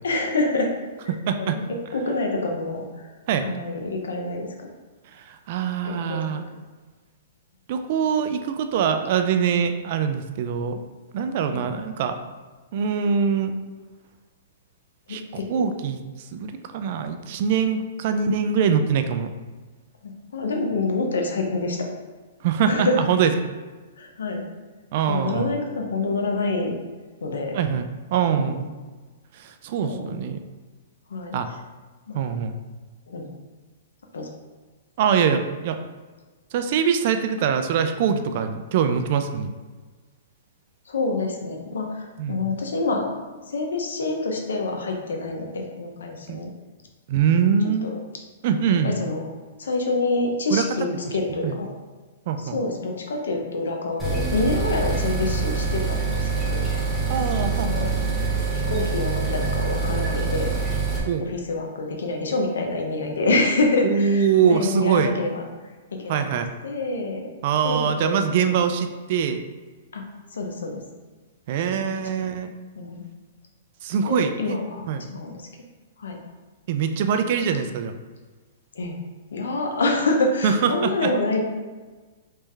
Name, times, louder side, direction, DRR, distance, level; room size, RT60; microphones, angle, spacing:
voice 1, 0.0-0.7 1.0-3.1 3.4-4.7 5.8-6.2 11.4-11.6 15.1-15.7 20.0-21.9 22.7-23.0 24.0-24.4 25.1-26.7 27.2-27.6 28.3-28.7 29.8-30.2 31.1-31.6 32.1-32.2 33.1-33.3 34.1-34.3 40.9-43.1 43.5-46.5 47.8-48.0 48.8-49.2 49.6-51.7 52.4-56.7 57.5-57.9 58.4-60.6 61.2-65.4 65.9-66.3 66.6-67.3 67.6-68.2 68.6-68.7 69.9-70.0 70.3-70.8 71.7-72.3 72.7-73.0 74.1-75.4 76.0-76.2 78.7-78.9 79.3-81.4, left 2 dB, 85° left, 2 dB, 0.7 m, -27 dB
voice 2, 1.1-1.6 3.3-3.5 5.1-6.4 7.7-10.8 11.1-12.2 12.7-13.5 15.1-16.0 16.3-19.3 22.4-23.3 24.9-25.5 27.5-28.6 29.4-30.4 31.3-31.5 32.1-32.6 35.0-35.8 36.5-39.5 42.2-42.4 46.3-46.4 47.1-47.9 48.4-48.9 50.5-50.6 51.4-51.6 52.3-52.6 57.1-57.9 61.1-61.3 63.8-65.1 66.1-66.5 67.4-69.4 71.5-72.5 73.8-74.6 74.9-75.1 76.7-78.0 80.4-81.1, right 7 dB, 50° right, 8 dB, 0.4 m, -23 dB
sound 1, 54.0-61.0, right 4 dB, 5° left, 1.0 m, -25 dB
3.3 x 3.2 x 3.2 m, 1.3 s
hypercardioid pair, 140°, 0 cm